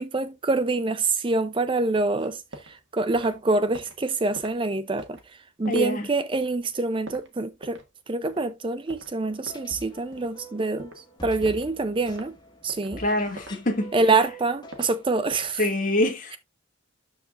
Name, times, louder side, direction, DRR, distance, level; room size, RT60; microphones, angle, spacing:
voice 1, 0.0-7.8 8.1-12.4 12.6-13.0 13.9-15.6, right 3 dB, 25° right, 0.5 m, -26 dB
sound 1, 1.9-2.8 3.0-8.0 8.3-8.5 8.9-10.4 10.8-11.0 11.4-11.7 12.1-12.3 12.7-13.6 13.9-14.9 15.3-15.6, right 1 dB, 60° right, 1.9 m, -44 dB
voice 2, 5.7-6.1 13.0-13.9 15.6-16.4, left 1 dB, 40° left, 2.0 m, -25 dB
sound 2, 9.2-15.3, right 1 dB, 20° left, 1.6 m, -45 dB
12.5 x 4.9 x 2.4 m
head